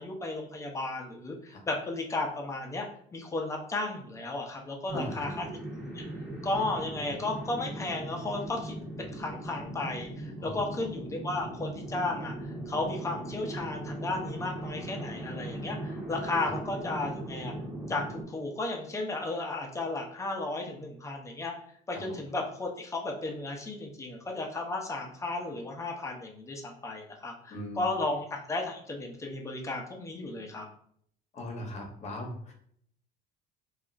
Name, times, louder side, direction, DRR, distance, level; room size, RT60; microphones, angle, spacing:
voice 1, 0.0-2.9 3.1-5.4 5.9-6.1 6.4-12.3 12.7-17.5 17.9-21.5 21.9-30.6, left 2 dB, 15° left, 1 dB, 0.6 m, -34 dB
voice 2, 4.9-5.3 10.4-10.6 16.4-16.5 21.9-22.2 27.5-27.8 31.3-32.5, left 1 dB, 35° left, 2 dB, 0.9 m, -39 dB
sound 1, 4.9-18.2, right 1 dB, 10° right, 0.9 m, -39 dB
2.4 x 2.1 x 3.8 m, 0.63 s
cardioid pair, 115°, 19 cm